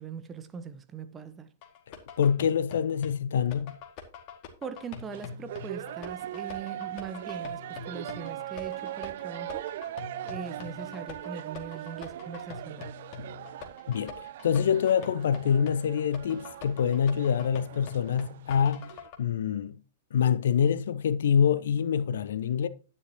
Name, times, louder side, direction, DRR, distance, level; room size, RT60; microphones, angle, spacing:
voice 1, 0.0-1.5 4.6-9.7 10.2-12.9, right 6 dB, 20° right, 1.0 m, -41 dB
sound 1, 1.6-19.2, left 6 dB, 40° left, 2.0 m, -45 dB
voice 2, 1.9-3.7 13.9-18.9 19.2-19.7 20.1-22.7, left 7 dB, 60° left, 0.6 m, -26 dB
sound 2, 5.0-19.1, right 12 dB, 50° right, 0.4 m, -40 dB
11.0 x 9.9 x 2.9 m
figure-of-eight pair, 105°, 0 cm